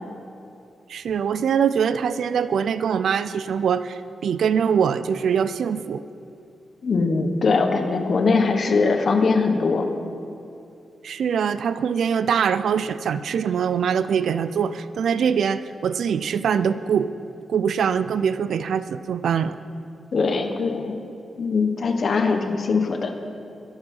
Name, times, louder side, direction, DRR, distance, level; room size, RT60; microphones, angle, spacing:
voice 1, 0.9-6.0 11.0-17.1 17.5-19.6, right 7 dB, 75° right, 13 dB, 0.4 m, -23 dB
voice 2, 6.8-9.9 20.1-20.9 21.4-23.1, left 4 dB, 45° left, 6 dB, 1.2 m, -21 dB
22.5 x 8.0 x 5.5 m, 2.6 s
wide cardioid pair, 145°, 0 cm